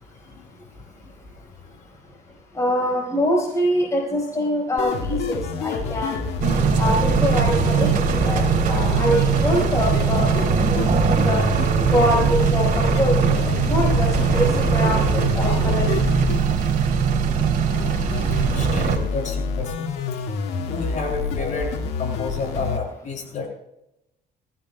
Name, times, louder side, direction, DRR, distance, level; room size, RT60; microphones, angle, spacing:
voice 1, 2.5-6.2 6.8-7.9 8.2-11.4 11.9-13.2 13.4-16.0, equal, 20° left, -2 dB, 4.9 m, -24 dB
sound 1, 4.8-22.8, left 5 dB, 85° left, 1.9 m, -29 dB
sound 2, 6.4-19.0, right 6 dB, 55° right, 3.2 m, -20 dB
voice 2, 18.5-19.9 20.6-21.7 22.0-23.5, left 4 dB, 45° left, -1 dB, 6.8 m, -30 dB
21.0 x 16.5 x 2.3 m, 0.84 s
cardioid pair, 110°, 17 cm